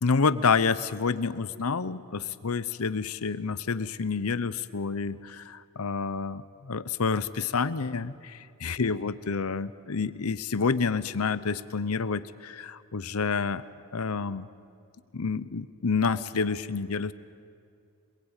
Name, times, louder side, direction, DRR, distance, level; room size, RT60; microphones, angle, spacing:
voice 1, 0.0-13.6 13.9-14.5 15.1-17.1, left 5 dB, 85° left, 15 dB, 0.8 m, -28 dB
26.0 x 22.0 x 9.0 m, 2.3 s
head